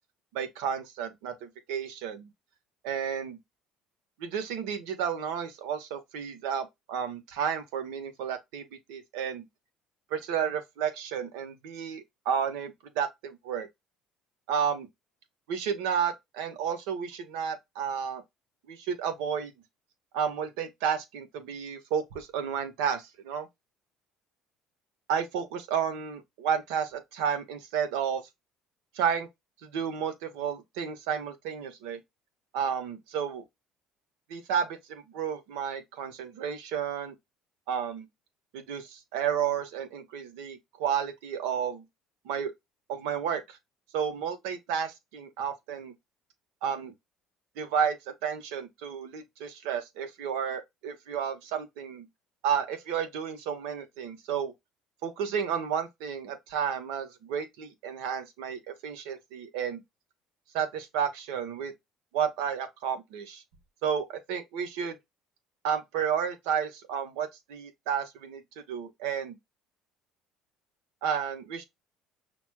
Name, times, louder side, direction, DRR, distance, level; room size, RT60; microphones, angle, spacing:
voice 1, 0.3-2.3 2.8-3.4 4.2-9.5 10.1-13.7 14.5-14.9 15.5-18.2 18.7-19.5 20.1-23.5 25.1-28.2 28.9-29.3 29.6-32.0 32.5-33.4 34.3-37.2 37.7-38.1 38.5-41.8 42.2-42.5 42.9-43.6 43.9-45.9 46.6-46.9 47.6-48.0 48.2-52.1 52.4-54.5 55.0-59.8 60.5-61.7 62.1-63.4 63.8-65.0 65.6-68.4 68.7-69.4 71.0-71.6, right 7 dB, 85° right, 0.9 m, -32 dB
6.0 x 2.3 x 2.2 m
supercardioid pair, 100°, 0 cm